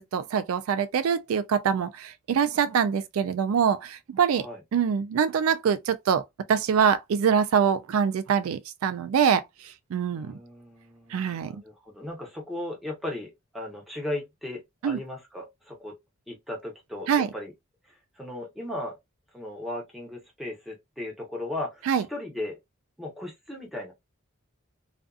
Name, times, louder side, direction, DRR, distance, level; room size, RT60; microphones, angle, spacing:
voice 1, 0.1-4.5 4.7-10.3 11.1-11.6 14.8-15.0 17.1-17.3 21.9-22.1, right 7 dB, 85° right, 0.3 m, -24 dB
voice 2, 10.1-16.0 16.3-17.5 17.8-19.0 19.3-22.6 23.0-23.9, left 1 dB, ahead, 0.8 m, -37 dB
2.4 x 2.4 x 2.3 m
head